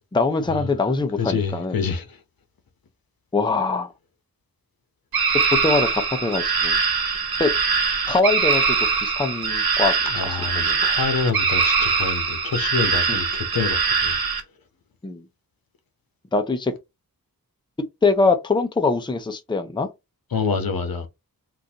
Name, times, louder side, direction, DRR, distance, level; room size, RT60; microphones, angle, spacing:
voice 1, 0.1-1.8 3.3-3.9 5.5-6.8 7.4-7.5 8.1-9.9 10.3-10.8 13.1-13.2 15.0-15.2 16.3-16.7 18.0-19.9, left 3 dB, 15° left, 0.5 m, -23 dB
voice 2, 1.2-2.2 10.1-14.2 20.3-21.1, left 5 dB, 75° left, 0.9 m, -26 dB
sound 1, 5.1-14.4, right 5 dB, 90° right, 0.9 m, -22 dB
3.8 x 2.5 x 2.8 m
wide cardioid pair, 110°, 36 cm